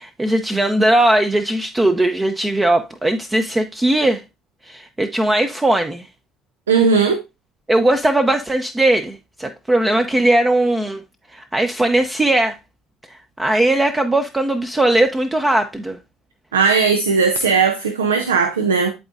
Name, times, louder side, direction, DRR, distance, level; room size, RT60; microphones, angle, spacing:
voice 1, 0.0-4.2 4.6-6.1 7.7-11.0 11.3-12.6 13.1-16.0, right 1 dB, 20° right, 0.6 m, -18 dB
voice 2, 6.7-7.2 16.5-18.9, right 5 dB, 85° right, 0.5 m, -17 dB
11.5 x 4.0 x 2.5 m
hypercardioid pair, 60°, 0 cm